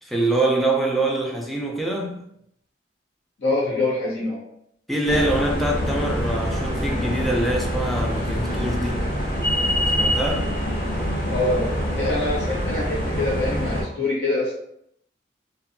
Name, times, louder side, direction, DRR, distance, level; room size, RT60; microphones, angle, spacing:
voice 1, 0.0-2.3 4.9-9.1 10.0-10.6, right 2 dB, ahead, -1 dB, 0.4 m, -24 dB
voice 2, 3.4-4.4 11.3-14.5, left 2 dB, 90° left, -6 dB, 0.8 m, -25 dB
sound 1, 5.1-13.8, equal, 55° left, 0.8 m, -25 dB
2.6 x 2.2 x 2.5 m, 0.73 s
head